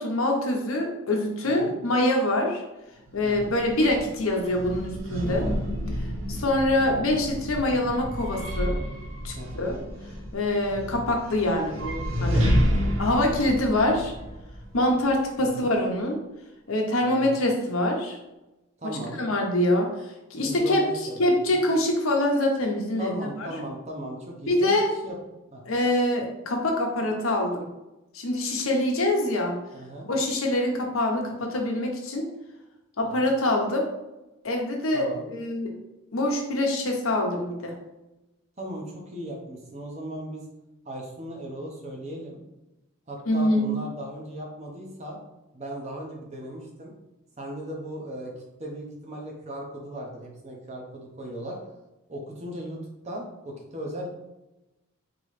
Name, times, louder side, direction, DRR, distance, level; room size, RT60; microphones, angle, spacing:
voice 1, 0.0-2.6 3.1-5.5 6.3-8.8 9.2-9.8 10.3-12.5 13.0-14.1 14.7-16.2 16.7-18.2 18.8-19.9 20.3-20.8 21.2-23.5 24.5-24.9 25.6-27.7 28.1-29.6 30.1-32.3 33.0-33.9 34.4-35.7 36.1-37.7 43.3-43.7, left 1 dB, 85° left, 1 dB, 0.8 m, -25 dB
voice 2, 1.4-1.8 3.2-3.5 5.3-5.6 9.4-9.6 12.6-13.0 15.4-15.7 17.0-17.4 18.8-19.2 20.3-21.6 23.0-24.7 25.0-25.2 25.5-25.6 29.7-30.1 33.2-33.3 34.9-35.2 38.6-40.4 40.8-42.4 43.1-45.2 45.5-46.9 47.4-51.6 52.1-52.8 53.0-54.1, right 1 dB, 30° right, -1 dB, 0.8 m, -37 dB
sound 1, 3.1-15.2, equal, 85° right, 0.8 m, -30 dB
4.0 x 3.0 x 3.2 m, 0.98 s
head